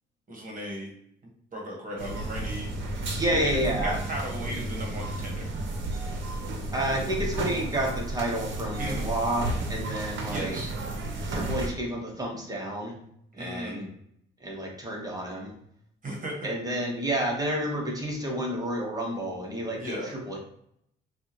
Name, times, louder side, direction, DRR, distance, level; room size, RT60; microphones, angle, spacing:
voice 1, 0.3-0.9 1.5-2.7 3.3-5.5 8.8-9.2 10.3-10.7 13.4-13.9 16.0-16.5 19.8-20.1, equal, 45° right, -1 dB, 1.3 m, -36 dB
sound 1, 2.0-11.7, right 2 dB, 70° right, 0.9 m, -32 dB
voice 2, 3.1-4.0 6.7-10.6 11.3-12.9 13.3-13.8 14.4-15.5 16.4-20.4, right 1 dB, 20° right, -1 dB, 1.2 m, -30 dB
4.7 x 2.4 x 2.9 m, 0.73 s
cardioid pair, 90°, 20 cm